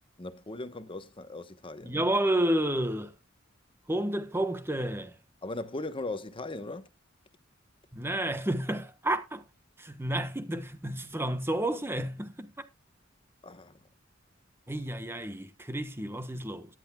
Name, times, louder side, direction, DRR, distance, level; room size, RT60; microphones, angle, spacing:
voice 1, 0.2-2.0 5.4-6.9 13.4-13.8, left 2 dB, 25° left, 1.1 m, -38 dB
voice 2, 1.8-3.1 3.9-5.1 7.9-9.4 9.8-12.5 14.7-16.7, right 1 dB, 10° right, 1.2 m, -30 dB
14.0 x 11.0 x 2.4 m
head